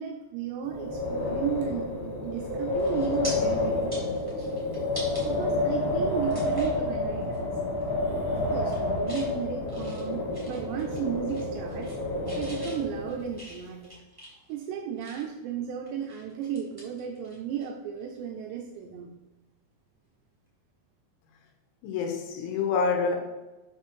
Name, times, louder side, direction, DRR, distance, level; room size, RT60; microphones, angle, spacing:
voice 1, 0.0-4.6 5.2-7.6 8.3-11.9 12.4-13.9 14.5-19.1, right 8 dB, 90° right, 2 dB, 2.4 m, -34 dB
Wind, 0.6-13.3, left 2 dB, 60° left, 3.5 m, -29 dB
sound 1, 2.2-2.4 2.8-3.3 3.7-5.2 5.7-5.8 6.3-6.8 7.2-7.4 7.7-8.2 8.5-9.3 9.7-11.0 11.3-12.0 12.2-15.4 15.8-17.7 18.0-18.2 20.0-20.2, equal, 30° right, 0.4 m, -45 dB
voice 2, 21.8-23.2, left 5 dB, 80° left, 2 dB, 3.4 m, -27 dB
8.0 x 5.8 x 4.3 m, 1.1 s
omnidirectional pair, 5.8 m